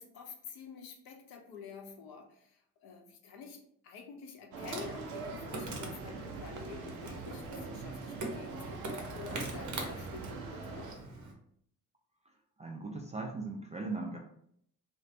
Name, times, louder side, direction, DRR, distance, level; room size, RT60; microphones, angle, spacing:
voice 1, 0.0-10.9, left 5 dB, 60° left, 2 dB, 0.7 m, -48 dB
sound 1, 4.5-10.9, right 4 dB, 85° right, 0.5 m, -43 dB
Insect, 4.6-11.3, right 2 dB, 45° right, 0.7 m, -43 dB
voice 2, 12.6-14.2, right 3 dB, 20° right, 1 dB, 0.3 m, -38 dB
2.3 x 2.1 x 2.6 m, 0.67 s
hypercardioid pair, 45°, 42 cm